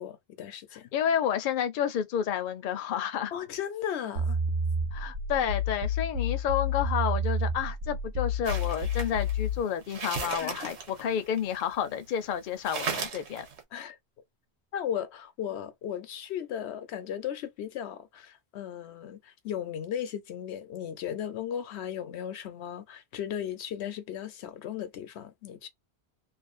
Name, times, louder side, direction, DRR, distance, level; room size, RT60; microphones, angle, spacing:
voice 1, 0.0-0.9 3.3-4.4 10.4-10.6 13.7-14.0 14.7-25.7, left 9 dB, 85° left, 0.9 m, -36 dB
voice 2, 0.9-3.3 4.9-13.5, left 9 dB, 60° left, 0.6 m, -30 dB
sound 1, 4.2-9.6, left 2 dB, 65° right, 0.9 m, -29 dB
sound 2, 8.4-12.0 12.3-12.4 12.6-13.6, right 5 dB, 90° right, 1.1 m, -36 dB
2.5 x 2.4 x 2.4 m
omnidirectional pair, 1.1 m